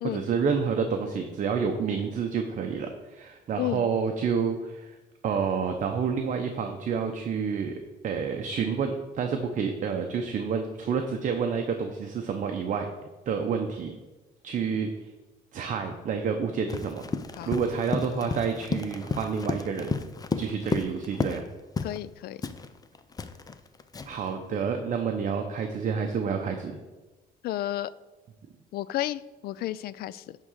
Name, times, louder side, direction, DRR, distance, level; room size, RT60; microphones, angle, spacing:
voice 1, 0.0-5.0 5.2-7.7 8.0-12.9 13.3-13.9 14.4-15.1 15.5-17.1 17.5-19.9 20.4-21.5 24.0-26.8, right 6 dB, 50° right, 4 dB, 0.8 m, -29 dB
Run, 16.7-21.5 21.8-22.0 22.4-24.3, left 4 dB, 20° left, 0.6 m, -32 dB
voice 2, 21.8-22.4 27.4-27.9 28.7-30.4, left 14 dB, 65° left, 18 dB, 0.4 m, -32 dB
10.5 x 3.8 x 6.4 m, 1.2 s
cardioid pair, 110°, 17 cm